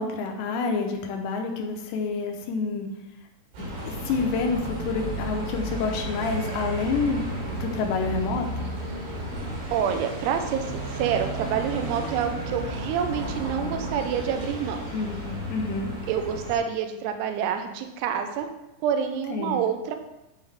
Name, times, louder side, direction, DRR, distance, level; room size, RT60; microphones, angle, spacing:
voice 1, 0.0-2.9 3.6-7.3 7.5-8.7 14.9-15.9 19.3-19.6, left 4 dB, 80° left, 3 dB, 3.0 m, -28 dB
Bus, 3.5-16.6, right 1 dB, 55° right, 2.8 m, -33 dB
voice 2, 9.7-14.8 16.1-18.5 18.8-19.9, right 8 dB, 80° right, 6 dB, 2.5 m, -27 dB
10.5 x 3.8 x 3.4 m, 0.95 s
omnidirectional pair, 5.1 m